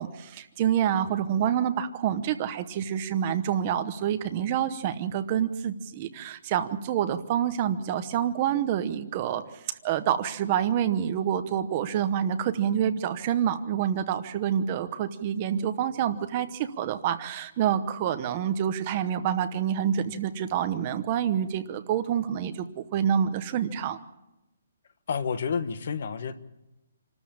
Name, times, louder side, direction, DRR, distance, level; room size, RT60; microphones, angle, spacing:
voice 1, 0.0-24.0, right 9 dB, 20° right, 0.9 m, -27 dB
voice 2, 25.1-26.4, left 6 dB, 45° left, 1.2 m, -29 dB
27.5 x 13.5 x 8.7 m
hypercardioid pair, 175°, 0 cm